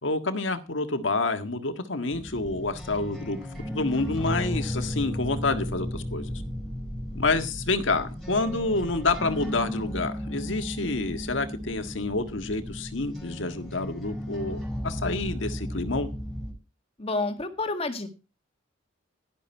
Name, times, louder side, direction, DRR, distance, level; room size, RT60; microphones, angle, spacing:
voice 1, 0.0-3.4 3.7-6.3 7.1-14.6 14.8-16.1, left 3 dB, 75° left, 1.7 m, -28 dB
sound 1, 2.1-16.5, equal, ahead, 4.6 m, -35 dB
voice 2, 17.0-18.1, left 3 dB, 30° left, 1.9 m, -29 dB
11.5 x 11.5 x 4.5 m
head